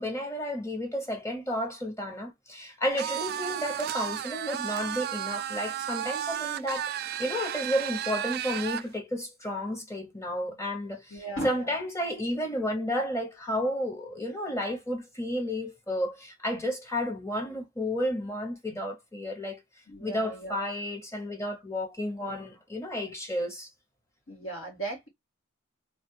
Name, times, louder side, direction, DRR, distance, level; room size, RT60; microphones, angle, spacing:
voice 1, 0.0-6.9 7.2-11.2 11.4-19.6 20.0-23.7, equal, 15° left, 0.9 m, -32 dB
sound 1, 3.0-8.9, right 10 dB, 50° right, 0.3 m, -33 dB
voice 2, 11.1-11.8 19.9-20.6 24.3-25.1, right 2 dB, 75° left, 1.9 m, -37 dB
3.2 x 2.6 x 3.0 m
head